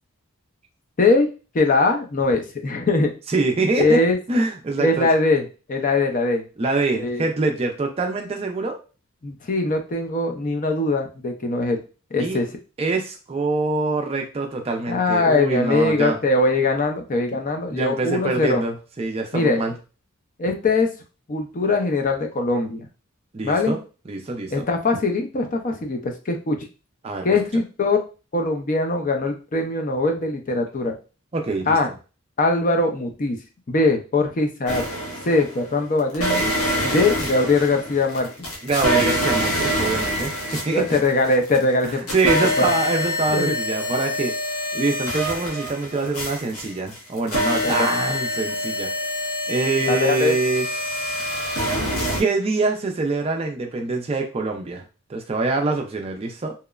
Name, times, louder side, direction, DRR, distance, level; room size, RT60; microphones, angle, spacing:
voice 1, 1.0-1.3 1.5-3.1 3.7-4.2 4.8-6.4 6.9-7.2 9.2-11.8 12.1-12.5 14.9-18.6 19.3-19.6 20.4-20.9 21.3-22.9 23.4-23.8 24.5-26.7 27.2-28.0 28.3-30.9 31.7-31.9 32.4-33.4 33.7-34.8 35.2-36.4 36.8-38.5 40.7-42.7 43.3-43.5 47.6-47.9 49.9-50.3, left 3 dB, 40° left, 4 dB, 0.5 m, -21 dB
voice 2, 3.3-4.0 4.3-5.1 6.6-8.8 12.2-12.4 12.8-16.2 17.7-19.7 23.3-23.8 24.1-24.7 27.0-27.4 31.3-31.8 38.6-40.3 40.6-41.0 41.8-44.3 44.7-48.9 49.5-50.7 52.1-54.8 55.1-56.5, right 3 dB, 30° right, 3 dB, 0.4 m, -24 dB
sound 1, 34.7-35.6 36.1-41.6 41.8-52.2, equal, 80° left, 0.8 m, -25 dB
2.9 x 2.0 x 2.3 m, 0.32 s
head